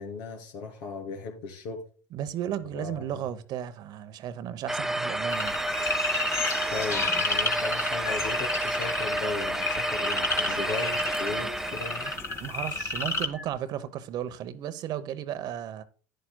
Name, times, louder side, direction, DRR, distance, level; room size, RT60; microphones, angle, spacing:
voice 1, 0.0-1.8 2.7-3.2 6.7-12.1, left 4 dB, 65° left, 3.0 m, -37 dB
voice 2, 2.1-5.6 12.4-15.8, right 10 dB, 50° right, 0.9 m, -34 dB
sound 1, 4.7-12.2, right 1 dB, 5° right, 0.3 m, -30 dB
sound 2, 5.3-13.3, left 3 dB, 35° left, 1.9 m, -31 dB
sound 3, 5.6-13.6, left 2 dB, 85° left, 4.8 m, -44 dB
11.5 x 10.5 x 2.2 m
hypercardioid pair, 85°, 9 cm